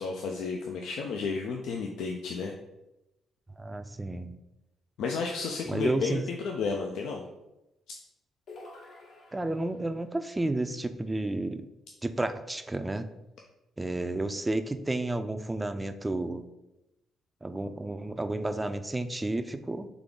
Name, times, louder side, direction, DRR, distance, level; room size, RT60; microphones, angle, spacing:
voice 1, 0.0-2.5 5.0-7.2 7.9-8.0, left 4 dB, 80° left, 1 dB, 0.4 m, -32 dB
voice 2, 3.6-4.4 5.7-6.2 9.3-11.6 12.0-13.1 13.8-16.4 17.4-19.9, right 2 dB, 15° right, 9 dB, 0.4 m, -31 dB
sound 1, 8.5-10.0, left 2 dB, 65° left, 1.2 m, -49 dB
3.7 x 3.4 x 3.7 m, 0.94 s
cardioid pair, 90°, 0 cm